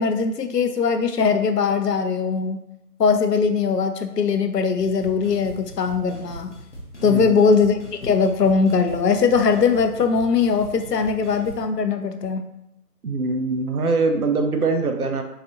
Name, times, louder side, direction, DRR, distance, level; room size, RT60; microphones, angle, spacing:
voice 1, 0.0-2.6 3.0-6.5 7.0-12.4, left 5 dB, 85° left, 7 dB, 0.6 m, -20 dB
sound 1, 4.8-11.7, equal, 50° left, 0.8 m, -40 dB
voice 2, 7.0-7.5 13.0-15.2, right 3 dB, 65° right, 5 dB, 0.6 m, -23 dB
3.9 x 2.7 x 2.5 m, 0.83 s
figure-of-eight pair, 165°, 47 cm